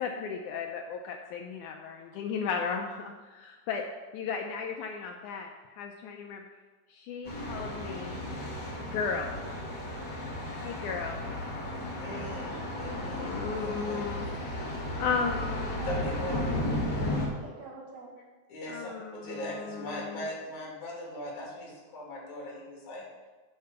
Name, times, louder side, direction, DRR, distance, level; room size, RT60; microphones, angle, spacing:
voice 1, 0.0-3.8 4.1-5.5 5.8-6.4 6.9-8.2 8.9-9.3 10.6-11.2 12.7-14.6 15.0-15.8 18.7-20.3, left 5 dB, 75° left, 3 dB, 1.9 m, -35 dB
Thunder, 7.2-17.3, left 1 dB, 40° left, 1.9 m, -34 dB
voice 2, 12.0-14.1 15.9-16.5 18.5-23.0, left 1 dB, 60° left, -4 dB, 4.0 m, -39 dB
voice 3, 15.8-18.1, right 2 dB, 70° right, -2 dB, 3.2 m, -45 dB
10.5 x 5.7 x 5.6 m, 1.3 s
omnidirectional pair, 3.9 m